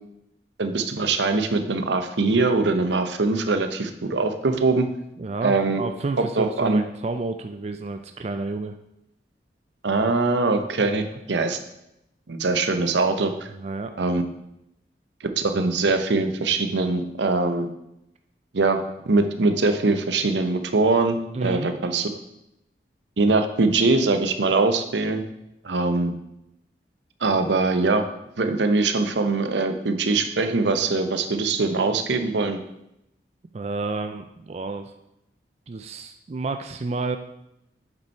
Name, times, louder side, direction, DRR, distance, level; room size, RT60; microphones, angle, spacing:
voice 1, 0.6-4.9 5.4-5.8 6.2-6.8 9.8-11.6 12.3-13.5 14.0-14.2 15.2-17.7 18.5-22.1 23.2-25.2 25.6-26.1 27.2-28.0 28.4-32.6, right 3 dB, 80° right, 8 dB, 0.7 m, -22 dB
voice 2, 5.2-8.8 13.6-13.9 21.3-21.7 33.5-34.9 35.7-37.2, right 3 dB, 35° right, 7 dB, 0.3 m, -30 dB
8.4 x 5.4 x 4.5 m, 0.84 s
head